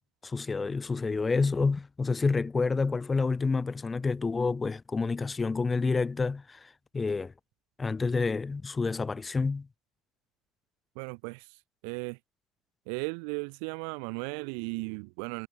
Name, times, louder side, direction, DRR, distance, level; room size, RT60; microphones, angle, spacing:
voice 1, 0.2-7.3 7.8-9.7, left 4 dB, 15° left, 0.6 m, -28 dB
voice 2, 10.9-12.2 12.9-15.5, right 40 dB or more, 75° right, 4.5 m, -36 dB
cardioid pair, 140°, 0 cm